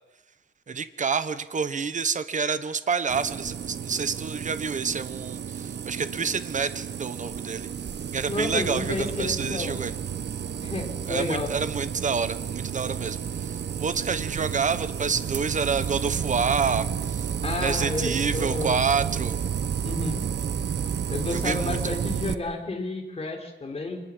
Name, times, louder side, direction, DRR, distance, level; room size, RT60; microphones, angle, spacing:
voice 1, 0.7-7.7 8.1-9.9 11.1-17.3 17.6-19.4 21.3-22.0, right 5 dB, 35° right, 12 dB, 1.2 m, -28 dB
sound 1, 3.1-22.3, right 8 dB, 55° right, 1.1 m, -31 dB
voice 2, 8.3-9.7 10.6-11.5 17.4-18.8 19.8-20.2 21.1-24.0, left 2 dB, 30° left, 3 dB, 3.9 m, -31 dB
25.5 x 20.0 x 7.5 m, 1.1 s
wide cardioid pair, 170°, 21 cm